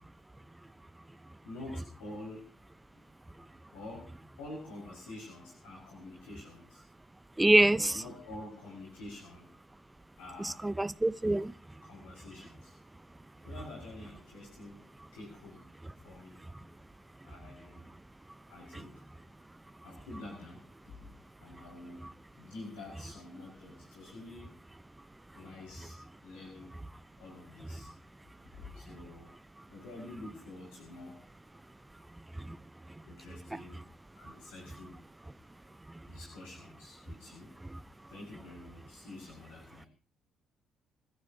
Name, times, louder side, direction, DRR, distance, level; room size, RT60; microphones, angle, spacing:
voice 1, 1.4-2.6 2.9-3.1 3.7-4.1 4.4-6.8 7.7-9.5 10.2-10.6 11.8-12.8 13.4-15.7 15.9-16.4 17.2-17.9 18.5-19.0 19.8-21.1 21.4-22.1 22.3-24.5 25.3-26.8 27.2-27.9 28.6-29.3 29.7-31.2 33.0-33.8 34.2-35.0 36.1-37.5 38.1-39.9, left 2 dB, 75° left, 5.4 m, -48 dB
voice 2, 7.4-7.8 10.8-11.5, right 1 dB, 15° right, 0.9 m, -23 dB
26.5 x 14.5 x 2.9 m
hypercardioid pair, 50°, 0 cm